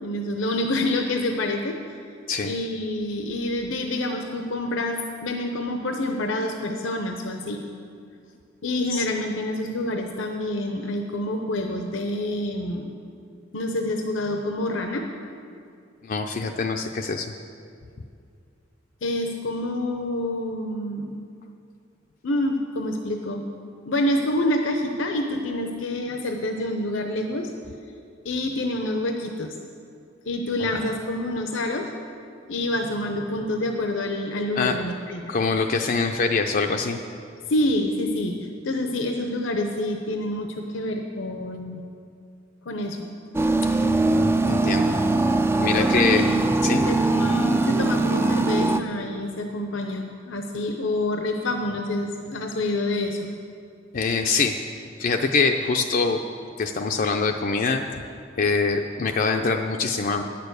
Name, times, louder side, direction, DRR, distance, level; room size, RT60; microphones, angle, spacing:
voice 1, 0.0-1.7 2.4-7.6 8.6-12.9 13.5-15.0 19.0-21.2 22.2-23.4 23.9-27.5 28.2-29.5 30.3-31.8 32.5-35.3 37.5-38.4 38.6-41.8 42.7-43.1 45.8-46.4 46.9-53.2, left 1 dB, 80° left, 4 dB, 0.7 m, -27 dB
voice 2, 16.0-17.3 30.6-30.7 34.5-34.8 35.3-37.0 43.6-45.0 45.6-46.2 46.6-46.8 53.9-54.6 55.0-56.2 56.6-57.8 58.4-60.2, left 4 dB, 45° left, 3 dB, 0.5 m, -24 dB
sound 1, 43.3-48.8, right 2 dB, 15° right, 0.3 m, -21 dB
10.0 x 6.8 x 8.1 m, 2.4 s
head